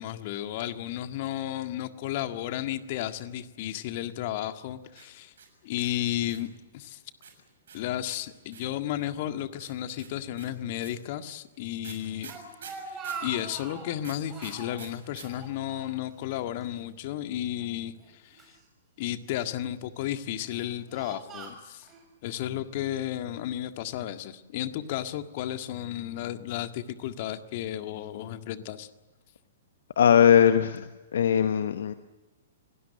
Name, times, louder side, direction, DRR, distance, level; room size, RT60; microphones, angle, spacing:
voice 1, 0.0-5.3 5.6-7.0 7.7-12.3 12.7-18.5 19.0-21.9 22.2-28.9, left 12 dB, 45° left, 9 dB, 1.7 m, -33 dB
sound 1, 4.9-6.6 7.2-8.8 9.6-13.3 14.0-15.3 15.5-15.6 15.8-16.3, right 7 dB, 60° right, 6.7 m, -47 dB
Speech, 12.0-13.9 14.3-14.8 15.2-16.3 16.6-16.8 17.6-18.6 19.3-19.7 20.3-22.0, right 4 dB, 20° right, 7.1 m, -42 dB
voice 2, 30.0-30.9 31.1-31.9, left 8 dB, 60° left, 10 dB, 1.1 m, -20 dB
28.0 x 19.0 x 7.7 m, 1.2 s
figure-of-eight pair, 110°, 0 cm